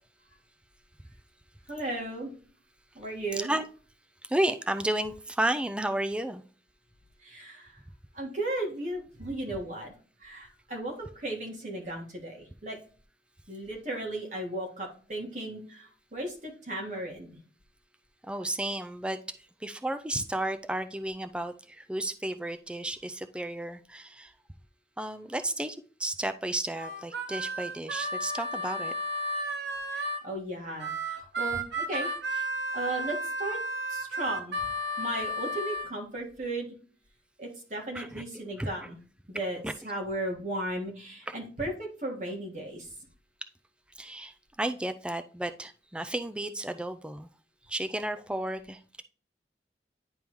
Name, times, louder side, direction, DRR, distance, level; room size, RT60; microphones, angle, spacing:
voice 1, 1.7-2.3 2.9-3.5 7.2-7.8 8.1-9.9 10.2-12.8 13.5-17.4 29.9-32.5 32.7-33.6 33.9-34.7 35.0-36.7 37.4-39.0 39.3-42.9, right 1 dB, 45° right, 1.7 m, -36 dB
voice 2, 3.3-3.7 4.2-6.4 18.2-19.2 19.6-24.3 25.0-28.9 37.9-38.2 38.6-38.7 39.6-39.7 41.3-41.4 44.0-47.3 47.7-49.0, right 1 dB, 5° right, 0.3 m, -32 dB
Harmonica, 26.8-30.2 30.8-35.9, right 1 dB, 85° right, 1.0 m, -33 dB
10.0 x 3.6 x 3.0 m
head